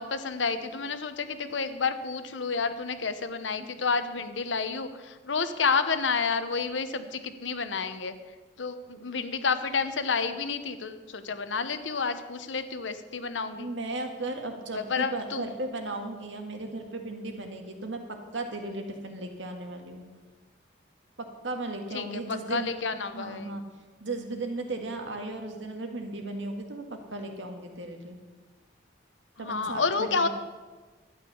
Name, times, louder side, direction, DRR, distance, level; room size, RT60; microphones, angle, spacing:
voice 1, 0.0-8.1 8.6-13.7 14.7-15.5 21.9-23.6 29.4-30.3, left 5 dB, 90° left, 10 dB, 0.9 m, -30 dB
voice 2, 13.6-18.0 18.3-20.0 21.2-22.7 23.1-23.6 24.0-28.2 29.4-30.3, right 2 dB, 90° right, 4 dB, 1.8 m, -36 dB
11.5 x 9.1 x 6.9 m, 1.3 s
head